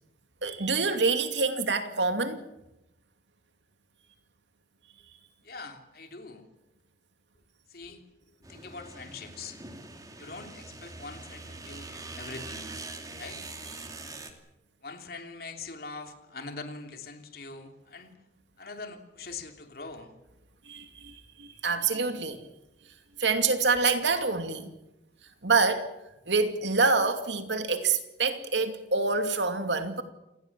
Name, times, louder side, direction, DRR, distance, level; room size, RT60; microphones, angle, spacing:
voice 1, 0.4-2.4 20.7-22.4 23.2-24.7 25.4-25.9 26.3-30.0, right 4 dB, 80° right, 2.5 m, -26 dB
voice 2, 5.4-6.5 7.7-8.0 8.4-9.6 10.2-12.7 13.2-13.5 14.8-18.2 18.6-20.1, left 4 dB, 55° left, 3.2 m, -43 dB
sound 1, 8.4-14.3, right 3 dB, 20° right, 2.7 m, -43 dB
28.0 x 19.0 x 7.4 m
head